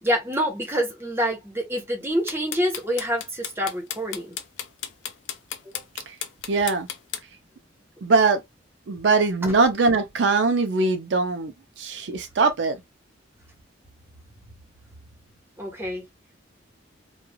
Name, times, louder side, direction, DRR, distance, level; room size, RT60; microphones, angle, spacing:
voice 1, 0.0-4.3 5.6-5.7 15.6-16.0, equal, 15° right, 1.0 m, -26 dB
sound 1, 2.1-7.2, left 10 dB, 85° left, 0.5 m, -33 dB
voice 2, 6.5-6.9 8.0-8.4 8.9-12.8, right 3 dB, 75° right, 0.5 m, -22 dB
3.1 x 2.3 x 2.2 m
head